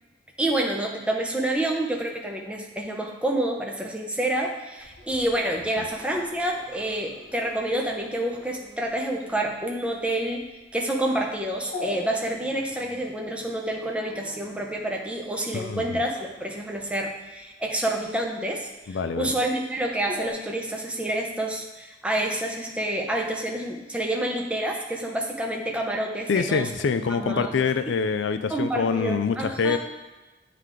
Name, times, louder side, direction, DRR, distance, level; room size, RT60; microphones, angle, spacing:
voice 1, 0.4-26.7 27.1-27.6 28.5-29.8, right 1 dB, 5° right, 0 dB, 0.7 m, -28 dB
Dog, 4.8-20.3, left 2 dB, 40° left, 1.1 m, -44 dB
voice 2, 15.5-16.0 18.9-19.3 26.3-29.8, left 5 dB, 85° left, 10 dB, 0.4 m, -25 dB
9.2 x 3.3 x 3.7 m, 1.1 s
head